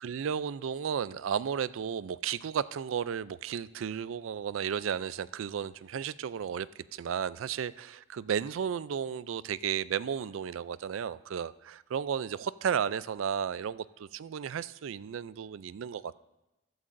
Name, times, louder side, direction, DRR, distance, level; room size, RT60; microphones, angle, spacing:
voice 1, 0.0-16.2, right 7 dB, 90° right, 18 dB, 0.4 m, -33 dB
15.0 x 12.0 x 2.6 m, 1.0 s
head